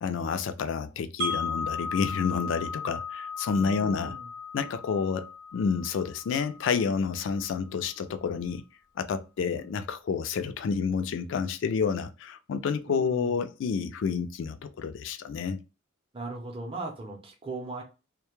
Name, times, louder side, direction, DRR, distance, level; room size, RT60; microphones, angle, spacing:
voice 1, 0.0-4.1 4.5-8.6 9.0-15.6, left 6 dB, 65° left, 0.3 m, -29 dB
Wind chime, 1.2-7.2, left 4 dB, 80° right, 0.7 m, -36 dB
voice 2, 3.6-4.3 12.9-13.4 16.1-17.8, right 3 dB, 30° right, 0.6 m, -38 dB
2.1 x 2.0 x 2.9 m
head